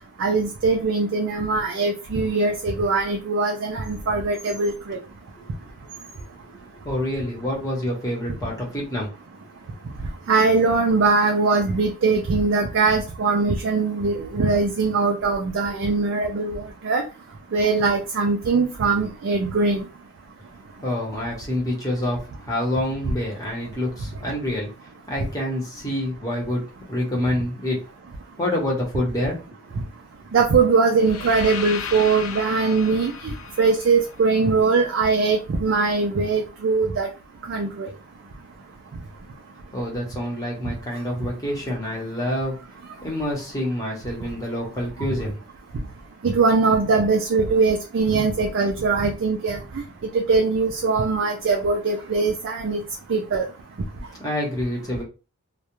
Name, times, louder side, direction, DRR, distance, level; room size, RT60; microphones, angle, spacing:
voice 1, 0.2-5.0 10.3-17.0 17.5-19.8 30.3-37.1 37.5-37.9 46.2-49.6 50.1-52.8 53.1-53.5, right 4 dB, 55° right, 2 dB, 0.4 m, -21 dB
voice 2, 6.8-9.1 20.8-24.7 25.1-26.6 26.9-27.8 28.4-29.4 29.7-29.8 39.7-42.6 43.0-45.4 54.2-55.0, left 1 dB, 15° left, -3 dB, 0.8 m, -27 dB
sound 1, 30.9-35.0, left 7 dB, 65° left, 0.4 m, -35 dB
2.3 x 2.0 x 2.9 m, 0.32 s
head